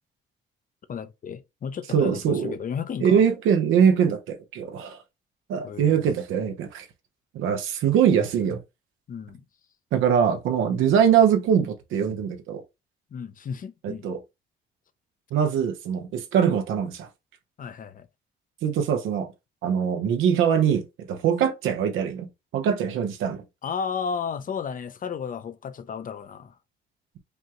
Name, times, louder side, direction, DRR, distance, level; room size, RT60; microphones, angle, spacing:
voice 1, 0.9-3.2 5.6-6.1 9.1-9.4 13.1-14.1 17.6-18.1 23.6-26.6, left 6 dB, 45° left, 0.6 m, -33 dB
voice 2, 1.9-2.6 3.0-5.0 5.5-6.9 7.3-8.6 9.9-12.6 13.8-14.2 15.3-17.1 18.6-19.3 19.6-23.4, right 8 dB, 85° right, 0.9 m, -22 dB
5.3 x 2.4 x 2.9 m
cardioid pair, 90°, 20 cm